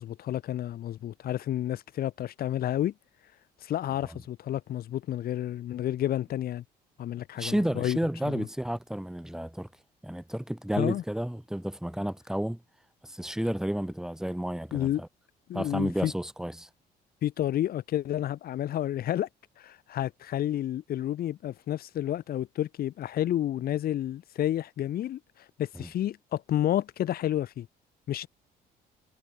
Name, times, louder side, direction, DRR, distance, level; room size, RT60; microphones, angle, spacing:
voice 1, 0.0-2.9 3.6-6.6 7.0-8.0 8.3-8.5 10.8-11.0 14.7-15.0 15.5-16.1 17.2-19.3 19.6-27.7 28.1-28.3, left 12 dB, 60° left, 3.7 m, -30 dB
voice 2, 7.4-9.7 10.0-12.6 13.0-15.1 15.5-16.7 25.8-25.9, equal, 5° right, 4.1 m, -31 dB
cardioid pair, 110°, 17 cm